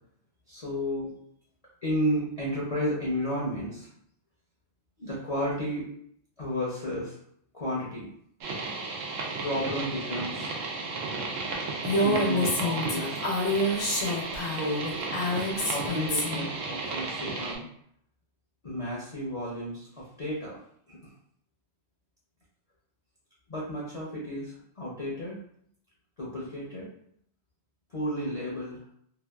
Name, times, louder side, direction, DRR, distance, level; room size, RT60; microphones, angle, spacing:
voice 1, 0.5-1.1 1.8-3.9 5.0-5.8 6.4-7.2 7.5-8.1 9.4-10.5 12.0-13.2 14.5-15.0 15.7-17.7 18.6-20.6 20.9-21.1 23.5-25.4 26.2-26.9 27.9-28.8, equal, 40° left, -6 dB, 0.5 m, -32 dB
sound 1, 8.4-17.6, right 3 dB, 90° right, 1.0 m, -34 dB
Female speech woman speaking, 11.8-16.5, left 1 dB, 80° left, 1.2 m, -28 dB
2.9 x 2.4 x 2.3 m, 0.67 s
omnidirectional pair, 1.3 m